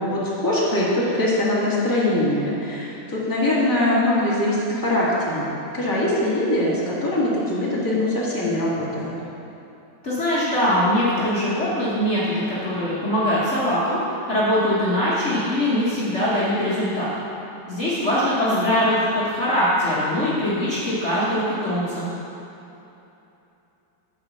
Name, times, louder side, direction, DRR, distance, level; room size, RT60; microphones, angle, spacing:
voice 1, 0.0-5.5 5.7-9.1 18.4-18.7, left 1 dB, 10° left, -7 dB, 1.8 m, -22 dB
voice 2, 10.0-14.0 14.3-17.1 17.7-18.9 19.2-22.1, equal, 40° left, -9 dB, 1.7 m, -22 dB
9.5 x 5.1 x 7.1 m, 2.9 s
omnidirectional pair, 2.0 m